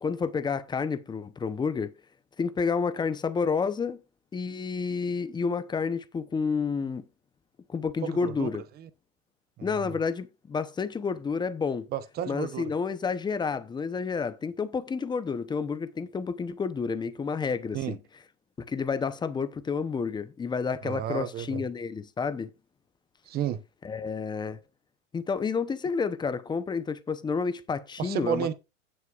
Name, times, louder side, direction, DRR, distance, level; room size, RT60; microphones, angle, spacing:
voice 1, 0.0-1.9 2.4-4.0 4.3-7.0 7.7-8.6 9.6-11.9 12.3-18.0 18.6-22.5 23.8-24.6 25.1-28.5, left 5 dB, 10° left, 0.7 m, -30 dB
voice 2, 8.0-8.5 8.8-8.9 9.6-9.9 11.9-12.7 17.7-18.0 20.8-21.6 23.3-23.6 28.0-28.5, right 10 dB, 25° right, 0.8 m, -32 dB
17.0 x 6.4 x 2.4 m
supercardioid pair, 135°, 39 cm